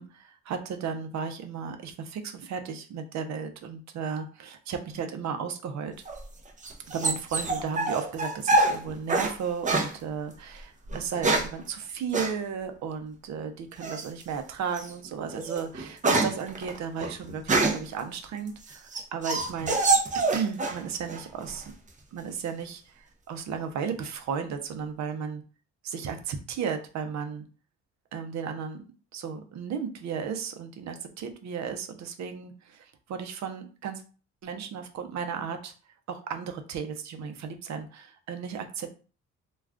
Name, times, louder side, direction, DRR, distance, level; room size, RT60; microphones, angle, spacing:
voice 1, 0.0-5.9 6.9-19.8 20.1-21.7 22.1-25.4 25.8-27.4 28.1-28.8 29.1-34.0 34.4-35.7 36.1-38.9, right 6 dB, 65° right, 7 dB, 0.6 m, -34 dB
sound 1, 6.1-9.3 9.6-9.9 10.9-11.6 12.1-12.3 13.8-14.2 14.7-14.9 15.3-17.9 18.5-20.8 21.1-21.7, right 2 dB, 25° right, 0.6 m, -26 dB
2.4 x 2.3 x 3.3 m, 0.37 s
cardioid pair, 90°, 30 cm